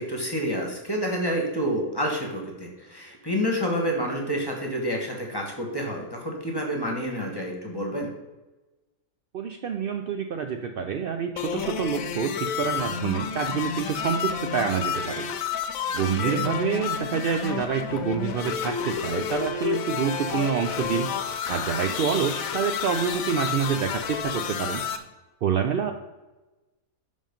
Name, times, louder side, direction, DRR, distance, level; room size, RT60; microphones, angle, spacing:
voice 1, 0.0-8.1 16.2-16.4, equal, 20° left, 1 dB, 1.1 m, -28 dB
voice 2, 9.3-12.3 12.6-15.3 15.9-21.1 21.5-24.8 25.4-25.9, right 7 dB, 85° right, 5 dB, 0.5 m, -27 dB
sound 1, 11.4-25.0, left 7 dB, 75° left, 1.1 m, -30 dB
5.5 x 5.2 x 5.2 m, 1.1 s
omnidirectional pair, 1.5 m